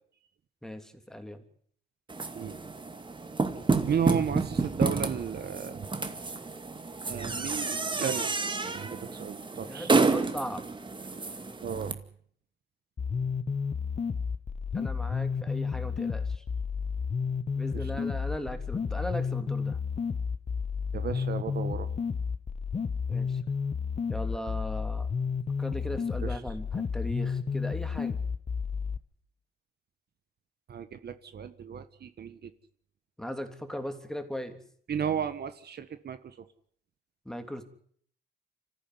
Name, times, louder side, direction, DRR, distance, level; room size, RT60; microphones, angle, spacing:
voice 1, 0.6-1.4 9.7-10.7 14.7-16.4 17.5-19.8 23.1-23.4 24.1-25.1 25.6-28.2 33.2-34.6 37.2-37.6, equal, 5° left, 8 dB, 3.1 m, -38 dB
sound 1, 2.1-11.9, right 3 dB, 25° right, 2.2 m, -30 dB
voice 2, 3.9-5.9 7.1-9.9 11.6-12.0 17.7-17.9 20.9-21.9 26.2-26.4 30.7-32.5 34.9-36.3, right 7 dB, 55° right, 11 dB, 1.6 m, -34 dB
sound 2, 13.0-29.0, left 5 dB, 35° left, 1.2 m, -31 dB
26.0 x 15.0 x 9.6 m, 0.63 s
cardioid pair, 90°, 20 cm